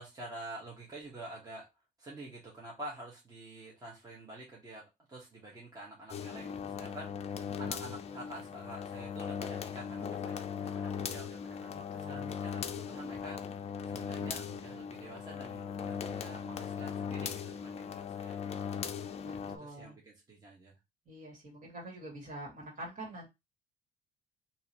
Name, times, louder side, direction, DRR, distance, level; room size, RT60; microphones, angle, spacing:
voice 1, 0.0-1.7 2.0-18.4 19.6-20.7, right 2 dB, 20° right, -4 dB, 1.3 m, -48 dB
sound 1, 6.1-19.6, left 7 dB, 40° left, 0.4 m, -39 dB
voice 2, 11.7-12.4 19.2-20.0 21.1-23.3, right 1 dB, 50° right, -1 dB, 2.1 m, -46 dB
3.7 x 2.7 x 3.0 m, 0.22 s
cardioid pair, 110°, 17 cm